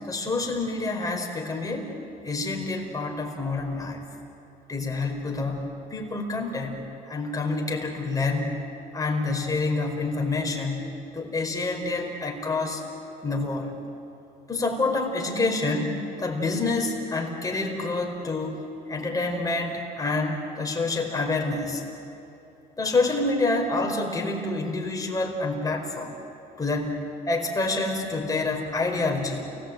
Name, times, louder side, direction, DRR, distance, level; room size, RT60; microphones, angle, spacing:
voice 1, 0.1-1.9 2.2-4.0 4.7-8.6 8.9-12.8 13.2-13.7 14.5-18.6 18.9-21.8 22.8-26.1 26.6-27.0 27.3-29.4, left 3 dB, 20° left, 1 dB, 4.9 m, -27 dB
29.5 x 19.5 x 9.0 m, 2.8 s
cardioid pair, 110°, 17 cm